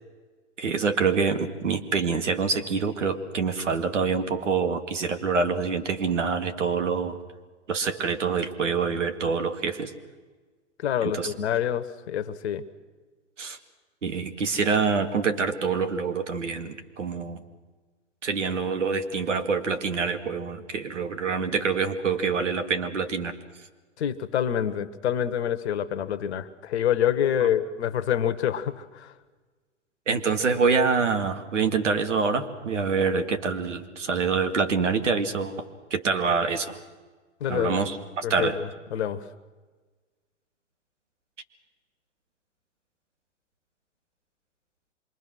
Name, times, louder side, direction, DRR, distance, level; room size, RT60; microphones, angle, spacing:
voice 1, 0.6-7.2 7.7-9.9 11.0-11.3 13.4-13.6 14.0-17.4 18.2-23.4 27.4-27.5 30.1-35.6 35.9-36.8 37.5-38.6, right 5 dB, 75° right, 8 dB, 2.2 m, -26 dB
voice 2, 10.8-12.6 24.0-29.1 37.4-37.8 38.2-39.2, left 9 dB, 60° left, 15 dB, 1.5 m, -27 dB
26.0 x 23.0 x 6.3 m, 1.3 s
hypercardioid pair, 110°, 37 cm